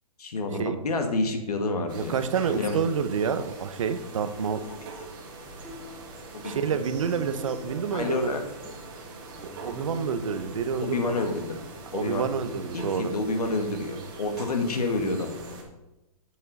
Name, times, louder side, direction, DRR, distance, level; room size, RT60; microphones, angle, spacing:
voice 1, 0.2-2.2 2.5-2.8 4.7-4.8 6.3-6.5 7.9-8.4 10.8-11.6 11.9-12.2 12.7-15.6, left 3 dB, 80° left, 5 dB, 1.8 m, -29 dB
sound 1, 1.9-15.6, right 3 dB, 35° right, 1.7 m, -43 dB
voice 2, 1.9-4.6 6.4-8.3 9.6-11.2 11.9-13.1, right 6 dB, 55° right, 11 dB, 0.8 m, -28 dB
sound 2, 5.5-12.9, left 3 dB, ahead, 0.4 m, -45 dB
7.9 x 7.2 x 4.1 m, 0.98 s
hypercardioid pair, 170°, 19 cm